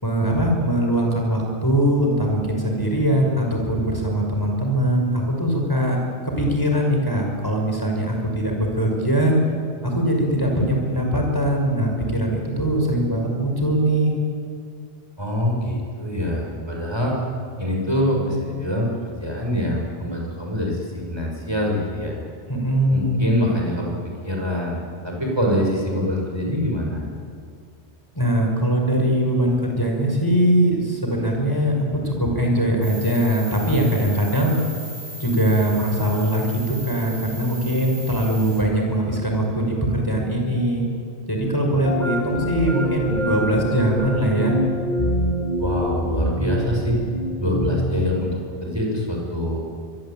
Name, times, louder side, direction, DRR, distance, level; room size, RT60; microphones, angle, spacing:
voice 1, 0.0-6.0 6.2-9.3 9.8-14.2 22.5-23.2 28.1-34.5 35.2-40.8 41.3-44.6, right 1 dB, 20° left, 1 dB, 5.7 m, -21 dB
voice 2, 15.2-17.2 17.6-22.1 22.9-23.9 24.2-27.0 45.6-47.0 47.4-49.6, equal, 25° right, -1 dB, 7.0 m, -24 dB
sound 1, 32.8-38.6, equal, 75° right, 5.8 m, -37 dB
sound 2, 41.8-47.8, equal, 45° left, 3.9 m, -25 dB
25.0 x 22.5 x 9.1 m, 2.2 s
omnidirectional pair, 1.1 m